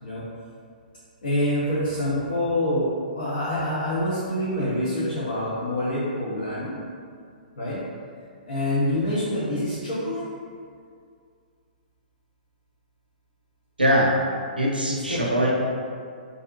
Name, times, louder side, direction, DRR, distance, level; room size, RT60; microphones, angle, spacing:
voice 1, 1.2-2.9 3.1-6.8 7.5-7.8 8.5-10.2 14.9-15.4, left 1 dB, 75° left, -10 dB, 0.6 m, -26 dB
voice 2, 13.8-14.1 14.6-15.5, equal, 80° right, -3 dB, 0.5 m, -21 dB
2.4 x 2.0 x 2.5 m, 2.2 s
figure-of-eight pair, 120°, 5 cm